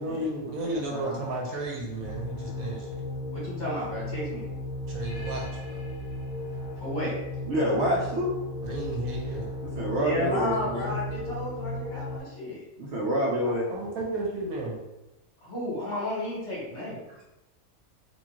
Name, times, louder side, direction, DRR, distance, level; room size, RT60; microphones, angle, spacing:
voice 1, 0.0-2.8 4.9-5.8 8.6-9.5 13.7-14.7, right 1 dB, 85° right, -2 dB, 1.4 m, -33 dB
voice 2, 0.6-1.2 7.5-8.3 9.6-10.9 12.8-13.7, equal, 60° right, -3 dB, 0.9 m, -28 dB
sound 1, 2.0-12.2, left 1 dB, 70° left, 1.4 m, -35 dB
voice 3, 3.3-4.4 6.8-7.1 10.0-12.6 15.4-17.0, left 1 dB, 55° left, -7 dB, 2.1 m, -32 dB
4.4 x 2.6 x 2.9 m, 0.93 s
omnidirectional pair, 1.5 m